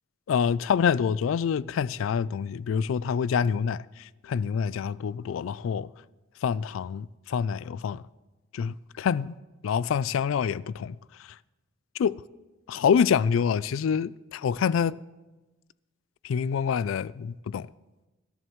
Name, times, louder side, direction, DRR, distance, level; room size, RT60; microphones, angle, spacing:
voice 1, 0.3-5.9 6.4-8.0 8.5-9.3 9.6-11.0 12.0-12.2 12.7-15.0 16.2-17.7, left 7 dB, 90° left, 0.3 m, -26 dB
23.5 x 11.0 x 3.1 m
head